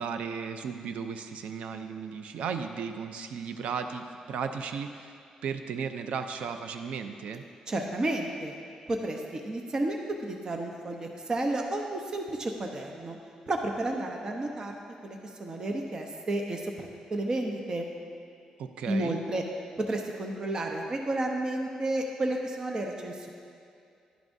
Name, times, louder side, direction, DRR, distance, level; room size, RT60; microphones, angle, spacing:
voice 1, 0.0-5.1 5.4-7.4 18.6-19.2, right 6 dB, 80° right, 7 dB, 0.5 m, -35 dB
voice 2, 7.7-8.6 8.9-13.2 13.5-14.8 15.0-17.9 18.9-19.4 19.8-23.3, right 2 dB, 35° right, 2 dB, 0.8 m, -32 dB
11.5 x 11.0 x 2.7 m, 2.5 s
cardioid pair, 115°, 2 cm